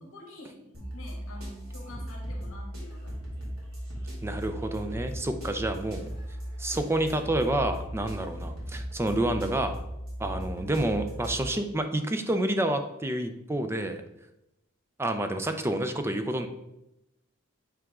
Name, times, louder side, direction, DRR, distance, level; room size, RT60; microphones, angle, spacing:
voice 1, 0.0-3.6, left 1 dB, 70° left, -1 dB, 1.9 m, -48 dB
sound 1, 0.7-11.4, equal, 85° right, 2.4 m, -37 dB
voice 2, 4.2-6.1 6.6-9.7 10.2-14.0 15.0-16.5, right 1 dB, 10° right, 7 dB, 0.5 m, -29 dB
9.0 x 3.6 x 3.6 m, 0.90 s
head